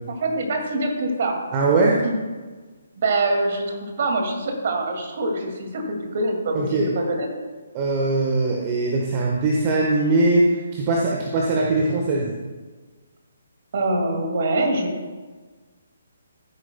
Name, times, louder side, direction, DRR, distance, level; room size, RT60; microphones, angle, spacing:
voice 1, 0.2-1.4 2.0-2.1 3.0-7.3 13.7-15.1, right 2 dB, 45° right, 2 dB, 2.1 m, -24 dB
voice 2, 1.5-2.0 6.5-6.9 7.7-12.3, right 2 dB, 30° right, -2 dB, 1.2 m, -21 dB
14.5 x 9.7 x 2.2 m, 1.3 s
figure-of-eight pair, 135°, 0 cm